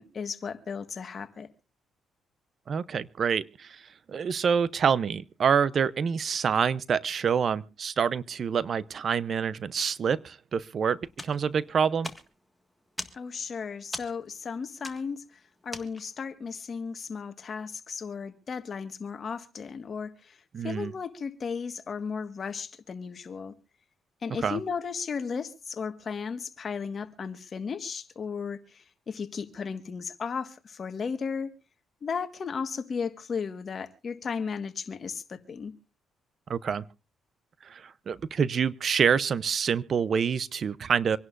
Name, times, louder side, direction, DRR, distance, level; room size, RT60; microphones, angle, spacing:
voice 1, 0.0-1.5 13.1-15.2 15.6-23.5 24.2-31.5 32.0-35.7, left 6 dB, 45° left, 1.5 m, -35 dB
voice 2, 2.7-3.8 4.1-12.1 20.5-20.9 24.4-24.6 36.5-36.8 37.7-41.2, right 6 dB, 50° right, 0.6 m, -27 dB
sound 1, 11.1-16.3, left 1 dB, ahead, 1.6 m, -43 dB
26.0 x 11.0 x 2.5 m
cardioid pair, 90°, 0 cm